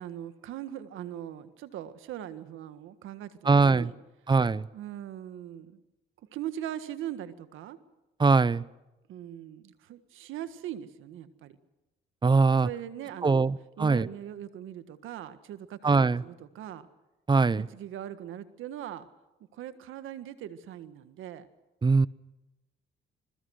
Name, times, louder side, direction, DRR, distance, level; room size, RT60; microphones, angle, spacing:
voice 1, 0.0-3.9 4.7-5.8 6.3-7.8 9.1-11.6 12.6-13.5 13.8-16.9 17.5-19.1 19.5-21.5, right 11 dB, 85° right, 12 dB, 1.7 m, -40 dB
voice 2, 3.4-3.9 4.3-4.7 8.2-8.6 12.2-12.7 13.2-14.1 15.8-16.2 17.3-17.7 21.8-22.1, right 4 dB, 25° right, 20 dB, 0.7 m, -22 dB
28.5 x 21.5 x 6.5 m, 1.0 s
cardioid pair, 90°, 20 cm